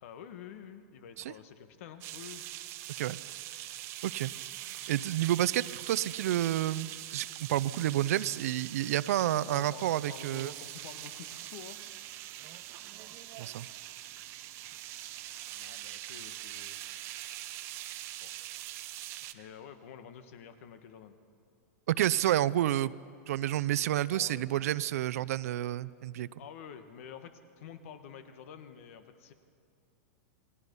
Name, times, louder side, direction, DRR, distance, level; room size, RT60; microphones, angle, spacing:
voice 1, 0.0-2.4 9.4-11.8 15.5-16.8 18.2-18.3 19.3-21.2 24.1-24.6 26.4-29.3, left 8 dB, 55° left, 9 dB, 1.5 m, -49 dB
sound 1, 2.0-19.3, right 14 dB, 30° right, 0.8 m, -43 dB
voice 2, 4.9-10.5 13.4-13.7 21.9-22.9 23.3-26.3, right 13 dB, 65° right, 18 dB, 0.6 m, -29 dB
28.5 x 21.0 x 5.5 m, 2.4 s
supercardioid pair, 160°, 9 cm